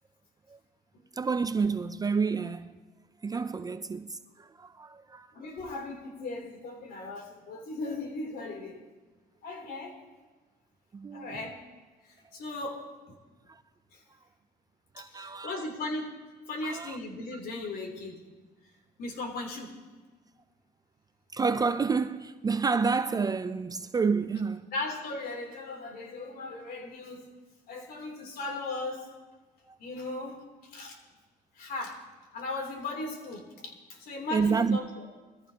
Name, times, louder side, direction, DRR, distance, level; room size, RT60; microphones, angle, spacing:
voice 1, 1.2-2.8 3.2-5.3 10.9-11.4 14.9-15.7 16.6-17.0 21.3-24.6 34.3-34.8, right 5 dB, 20° right, 0.4 m, -29 dB
voice 2, 5.3-8.8 9.4-10.0 11.1-11.6 12.0-13.2 13.9-14.0 15.0-16.1 16.5-18.2 19.0-19.8 24.7-27.3 27.7-29.1 29.8-31.0 31.5-32.0 32.3-34.9, left 2 dB, 60° left, 3.2 m, -37 dB
22.0 x 14.5 x 2.9 m
cardioid pair, 110°, 17 cm